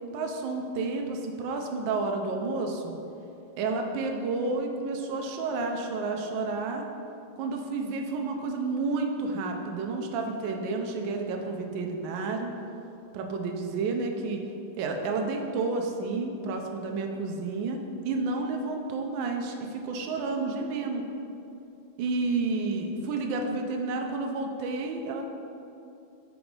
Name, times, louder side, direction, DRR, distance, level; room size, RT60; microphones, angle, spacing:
voice 1, 0.1-2.9 3.6-6.9 7.4-12.5 13.1-14.4 14.8-17.8 18.0-21.0 22.0-25.2, right 3 dB, 70° right, 3 dB, 1.3 m, -30 dB
5.0 x 4.7 x 5.1 m, 2.7 s
omnidirectional pair, 2.3 m